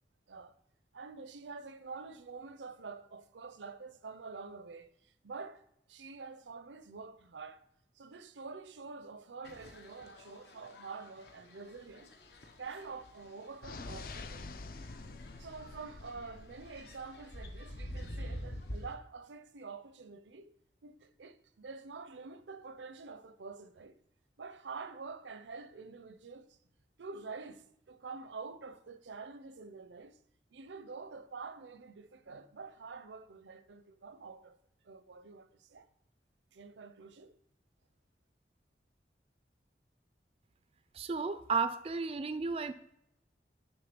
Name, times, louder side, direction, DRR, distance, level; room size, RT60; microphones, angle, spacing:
voice 1, 0.9-5.6 5.9-7.6 8.0-12.1 12.6-14.5 15.4-20.5 20.8-24.0 24.4-26.6 27.0-30.2 30.5-34.6 34.8-35.9 36.5-37.3, right 4 dB, 90° right, 0.6 m, -47 dB
sound 1, 9.4-18.9, equal, 65° left, 1.1 m, -48 dB
sound 2, 13.6-17.4, left 3 dB, 50° left, 0.5 m, -47 dB
voice 2, 40.9-42.7, right 4 dB, 30° right, 0.3 m, -33 dB
10.0 x 3.6 x 6.9 m
head